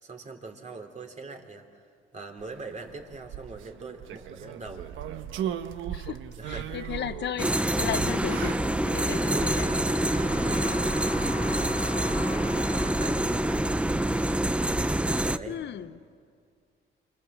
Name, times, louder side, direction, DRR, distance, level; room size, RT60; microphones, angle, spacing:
voice 1, 0.0-1.8 2.1-4.9 6.4-6.8 9.0-9.8 10.1-11.6 12.2-13.8 15.2-15.6, right 3 dB, 35° right, 3 dB, 3.3 m, -41 dB
sound 1, 2.4-11.2, right 9 dB, 85° right, 1.2 m, -39 dB
voice 2, 5.9-9.7 15.5-16.0, left 10 dB, 65° left, 13 dB, 1.0 m, -35 dB
Wind instrument woodwind instrument, 6.7-15.4, left 5 dB, 40° left, 1.7 m, -42 dB
sound 2, 7.4-15.4, right 1 dB, 5° right, 0.8 m, -26 dB
28.5 x 25.5 x 7.5 m, 2.2 s
cardioid pair, 90°, 20 cm